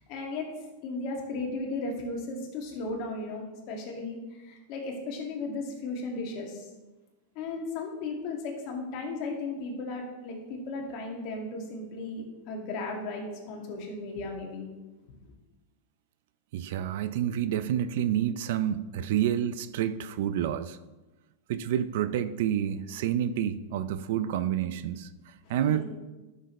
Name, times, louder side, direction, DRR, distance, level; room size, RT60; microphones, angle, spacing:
voice 1, 0.1-0.5 0.8-6.7 7.4-14.7 25.4-25.8, left 3 dB, 40° left, 0 dB, 2.0 m, -35 dB
voice 2, 16.5-20.8 21.5-25.8, right 10 dB, 55° right, 13 dB, 0.4 m, -29 dB
12.0 x 6.5 x 3.1 m, 1.1 s
supercardioid pair, 160°, 0 cm